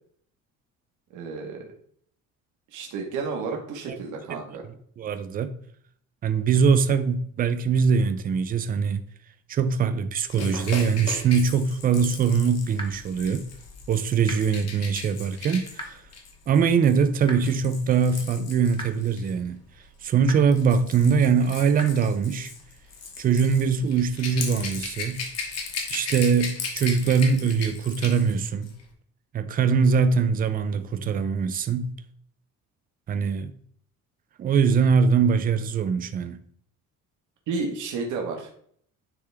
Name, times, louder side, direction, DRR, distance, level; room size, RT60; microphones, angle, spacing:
voice 1, 1.1-1.7 2.7-4.6 37.5-38.5, right 4 dB, 75° right, 1.4 m, -31 dB
voice 2, 5.0-5.5 6.2-9.0 9.5-13.4 13.9-16.0 16.5-19.6 20.0-22.5 23.2-25.2 25.9-28.7 29.3-31.9 33.1-33.5 34.4-36.4, right 6 dB, 30° right, 0.4 m, -22 dB
Rattle / Rattle (instrument), 10.3-19.3 20.2-28.4 28.6-28.8, left 5 dB, 55° left, 1.3 m, -37 dB
sound 1, 12.8-12.9 14.3-14.4 15.8-15.9 17.3-17.4 18.8-18.9 20.3-20.4 21.8-21.9, left 1 dB, 15° left, 0.9 m, -34 dB
9.8 x 3.4 x 3.4 m
cardioid pair, 180°, 31 cm